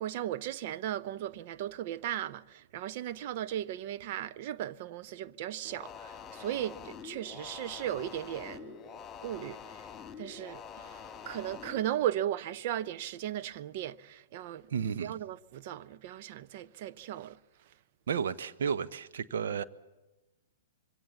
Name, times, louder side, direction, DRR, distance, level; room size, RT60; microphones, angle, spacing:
voice 1, 0.0-8.8 9.2-9.9 10.2-14.7 15.0-17.4, right 12 dB, 45° right, 0.8 m, -36 dB
sound 1, 5.6-11.8, left 7 dB, 15° left, 2.8 m, -46 dB
voice 2, 14.7-15.1 18.1-19.6, right 7 dB, 60° right, 1.1 m, -32 dB
25.5 x 24.0 x 7.1 m
figure-of-eight pair, 110°, 0 cm